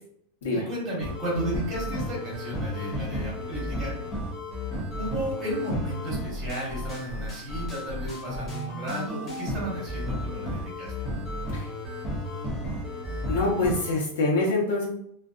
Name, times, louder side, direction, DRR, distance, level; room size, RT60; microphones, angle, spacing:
voice 1, 0.5-3.9 4.9-10.9, right 1 dB, 25° right, -4 dB, 1.2 m, -33 dB
sound 1, 1.0-13.9, left 1 dB, 25° left, 0.6 m, -33 dB
voice 2, 13.3-14.9, left 2 dB, 85° left, -2 dB, 0.9 m, -25 dB
2.5 x 2.3 x 2.4 m, 0.70 s
supercardioid pair, 170°, 0 cm